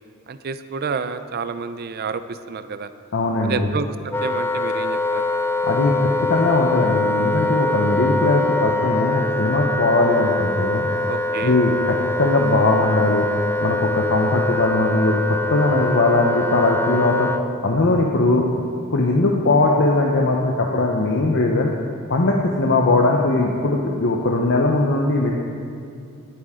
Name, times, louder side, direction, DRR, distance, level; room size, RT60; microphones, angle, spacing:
voice 1, 0.3-2.9 3.4-5.3 11.1-11.6, right 5 dB, 45° right, 11 dB, 0.4 m, -29 dB
voice 2, 3.1-3.7 5.6-10.9 11.4-13.3 13.6-15.2 15.5-17.3 17.6-18.6 18.9-21.7 22.1-25.3, left 2 dB, 60° left, -1 dB, 0.9 m, -19 dB
Wind instrument woodwind instrument, 4.1-17.5, left 2 dB, 10° left, 0.4 m, -24 dB
18.5 x 8.8 x 3.8 m, 2.5 s
head